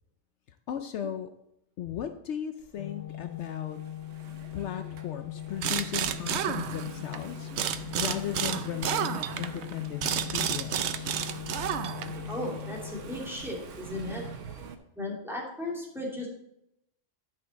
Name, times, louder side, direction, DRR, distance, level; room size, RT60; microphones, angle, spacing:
voice 1, 0.5-1.3 1.8-3.8 4.5-7.5 8.0-11.1, left 10 dB, 70° left, 8 dB, 0.9 m, -36 dB
Engine / Mechanisms, 2.6-14.7, right 6 dB, 90° right, 1.3 m, -45 dB
Organ, 2.8-13.7, left 13 dB, 20° left, 0.9 m, -41 dB
sound 1, 5.6-7.2 7.6-12.3, right 9 dB, 70° right, 0.9 m, -31 dB
voice 2, 12.3-14.2 15.0-16.3, left 1 dB, ahead, -4 dB, 2.7 m, -36 dB
11.0 x 6.5 x 4.1 m, 0.82 s
omnidirectional pair, 1.2 m